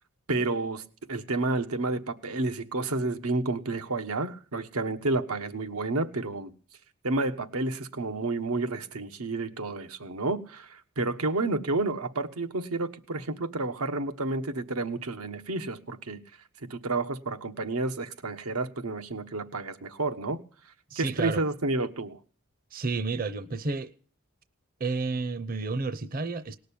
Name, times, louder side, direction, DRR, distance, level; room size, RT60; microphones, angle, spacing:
voice 1, 0.3-6.5 7.0-16.2 16.7-20.4 21.0-22.2, right 2 dB, 90° right, 1.2 m, -30 dB
voice 2, 20.9-21.4 22.7-23.9 24.8-26.6, right 3 dB, 40° right, 0.7 m, -31 dB
19.0 x 6.5 x 8.5 m
head